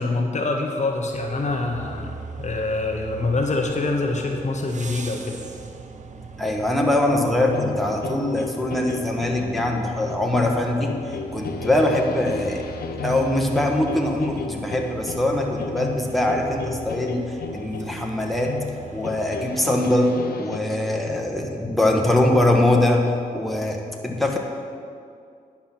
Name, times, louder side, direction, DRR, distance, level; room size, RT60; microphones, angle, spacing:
voice 1, 0.0-5.4, left 3 dB, 45° left, 2 dB, 1.0 m, -25 dB
sound 1, 1.1-19.6, right 5 dB, 50° right, 0.9 m, -40 dB
voice 2, 6.4-12.6 13.0-18.6 18.9-24.4, left 1 dB, ahead, 0 dB, 1.5 m, -22 dB
sound 2, 7.5-20.6, left 6 dB, 75° left, 0.5 m, -34 dB
10.5 x 5.8 x 6.1 m, 2.3 s
cardioid pair, 55°, 16 cm